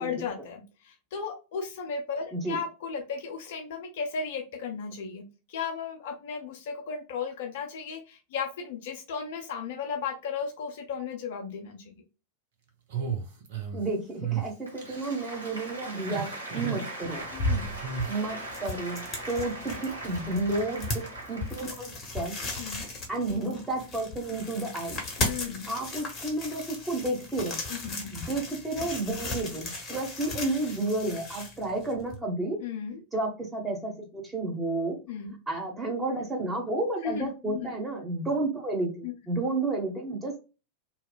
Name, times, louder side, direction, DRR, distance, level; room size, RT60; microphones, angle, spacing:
voice 1, 0.0-11.9 17.3-17.8 22.6-22.9 25.2-25.7 27.7-28.1 32.6-33.0 35.1-35.3 37.0-37.7 39.0-39.1, left 6 dB, 55° left, 4 dB, 0.5 m, -35 dB
sound 1, 12.9-13.8 14.2-14.5 14.8-15.3 15.9-16.9 17.8-18.2, right 7 dB, 55° right, 0.7 m, -33 dB
voice 2, 13.7-17.2 18.1-22.4 23.1-25.0 25.7-27.6 28.1-32.6 33.1-35.0 35.5-40.4, right 2 dB, 10° right, -1 dB, 1.1 m, -31 dB
Applause, 14.6-22.0, right 2 dB, 75° right, 0.9 m, -40 dB
sound 2, 17.0-32.2, left 2 dB, 25° left, 0.9 m, -36 dB
2.9 x 2.0 x 2.3 m, 0.30 s
figure-of-eight pair, 90°, 0 cm